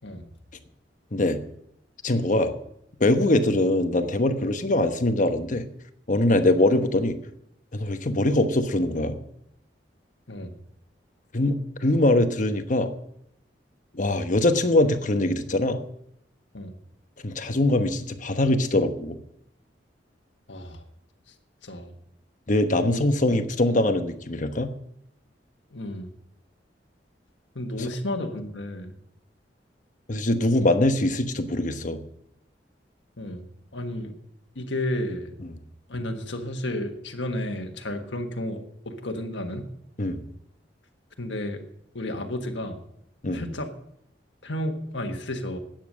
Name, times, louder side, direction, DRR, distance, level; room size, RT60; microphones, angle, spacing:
voice 1, 2.0-2.5 3.0-5.7 6.1-7.2 7.7-9.2 11.3-12.9 13.9-15.8 17.2-19.2 22.5-24.7 27.8-27.9 30.1-32.0 35.5-35.6 40.0-40.2 43.2-43.4, left 1 dB, 45° left, 8 dB, 1.1 m, -22 dB
voice 2, 20.5-20.8 21.6-21.9 22.9-23.2 25.7-26.1 27.5-28.9 33.2-33.5 33.7-34.1 34.5-35.4 35.9-39.6 41.2-41.6 41.9-42.8 43.3-43.7 44.4-45.6, left 1 dB, 80° left, 5 dB, 1.5 m, -32 dB
13.0 x 9.2 x 6.3 m, 0.73 s
head